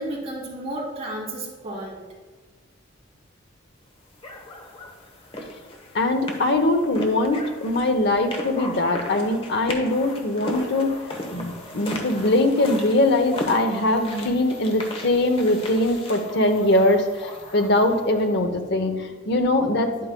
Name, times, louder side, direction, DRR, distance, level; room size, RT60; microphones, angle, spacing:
voice 1, 0.0-2.0, right 1 dB, 35° right, -7 dB, 2.6 m, -32 dB
sound 1, 4.2-18.3, left 1 dB, 30° left, 1.0 m, -37 dB
voice 2, 5.9-11.0 11.3-19.9, left 1 dB, 65° left, 6 dB, 0.8 m, -22 dB
10.0 x 8.5 x 2.2 m, 1.3 s
head